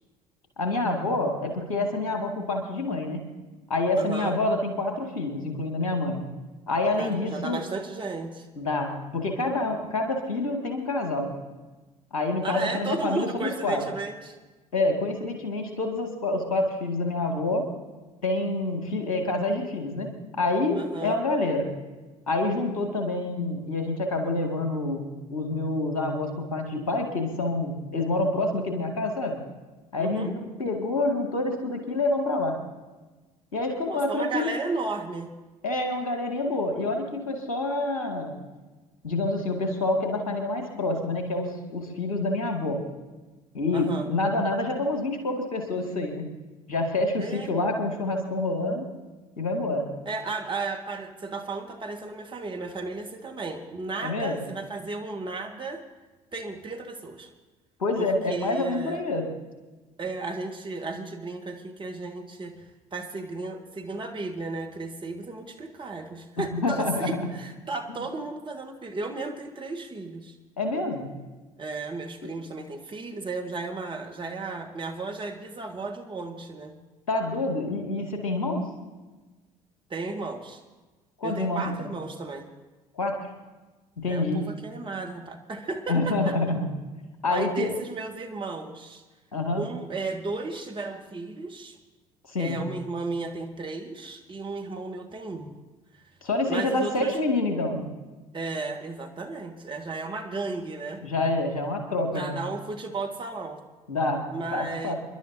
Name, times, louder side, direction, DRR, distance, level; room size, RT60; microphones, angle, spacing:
voice 1, 0.6-3.2 3.7-6.2 6.7-7.6 8.6-11.3 12.1-13.8 14.7-17.7 18.2-21.7 22.3-29.4 29.9-32.6 33.5-34.5 35.6-38.3 39.0-42.8 43.5-46.3 46.7-48.8 49.4-49.9 54.0-54.4 57.8-59.3 66.4-67.1 70.6-71.1 77.1-78.7 81.2-81.9 82.9-83.2 84.0-84.4 85.9-86.7 87.2-87.7 89.3-89.6 92.3-92.6 96.2-97.9 101.0-102.4 103.9-104.3 104.5-104.9, left 2 dB, 75° left, 3 dB, 2.2 m, -27 dB
voice 2, 4.0-4.3 7.0-8.5 12.4-14.4 20.7-21.2 30.0-30.3 33.9-35.3 43.7-44.1 47.2-47.5 50.1-55.8 56.3-57.3 58.0-59.0 60.0-62.5 62.9-70.4 71.6-76.7 79.9-80.6 81.2-82.5 84.1-86.4 87.3-89.0 89.6-91.8 92.4-95.5 96.5-97.2 98.3-101.0 102.1-103.6 104.3-104.9, right 3 dB, 25° right, 2 dB, 1.7 m, -34 dB
29.0 x 11.5 x 2.8 m, 1.2 s
figure-of-eight pair, 55°, 18 cm